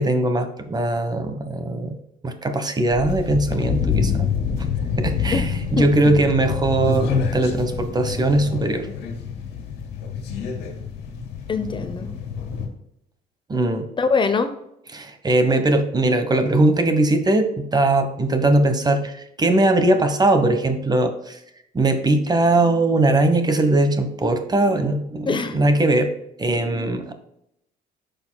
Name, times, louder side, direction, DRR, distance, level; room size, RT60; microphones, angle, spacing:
voice 1, 0.0-2.0 2.2-4.3 5.0-8.9 13.5-13.8 14.9-21.4 21.7-26.1 26.4-27.1, right 2 dB, 25° right, 8 dB, 1.2 m, -20 dB
sound 1, 2.9-12.7, left 7 dB, 75° left, 2.1 m, -27 dB
voice 2, 5.8-6.2 11.5-12.1 14.0-14.6 25.3-25.6, left 4 dB, 30° left, 9 dB, 0.7 m, -23 dB
11.0 x 6.6 x 2.3 m, 0.79 s
cardioid pair, 105°, 17 cm